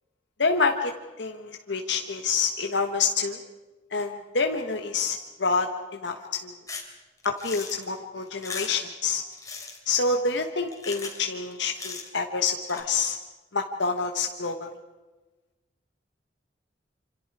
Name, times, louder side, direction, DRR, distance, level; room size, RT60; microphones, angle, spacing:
voice 1, 0.4-0.9 1.2-3.4 3.9-6.5 7.2-9.2 9.9-13.2 13.5-14.7, left 4 dB, 70° left, 4 dB, 1.4 m, -27 dB
sound 1, 6.7-6.9 7.2-7.8 8.3-8.9 9.3-9.8 10.7-11.3 11.5-12.2 12.7-12.8, left 4 dB, 20° left, 3.3 m, -38 dB
27.5 x 26.5 x 4.9 m, 1.2 s
head